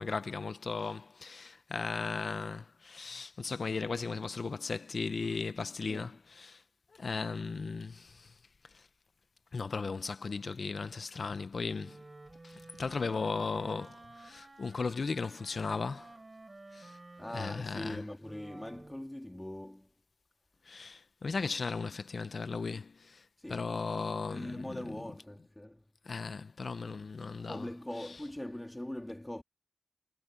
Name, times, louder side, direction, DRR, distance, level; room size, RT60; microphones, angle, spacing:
voice 1, 0.0-6.6 6.9-8.3 8.7-8.8 9.5-12.0 12.4-16.1 16.7-17.0 17.3-18.0 20.7-23.2 23.5-24.8 26.1-27.7, left 4 dB, 80° left, 0.7 m, -36 dB
Wind instrument woodwind instrument, 11.7-19.1, right 2 dB, 40° right, 7.1 m, -53 dB
voice 2, 17.2-19.9 23.4-23.7 24.3-25.8 27.5-29.4, left 1 dB, 15° left, 2.0 m, -41 dB
wide cardioid pair, 60°, 0 cm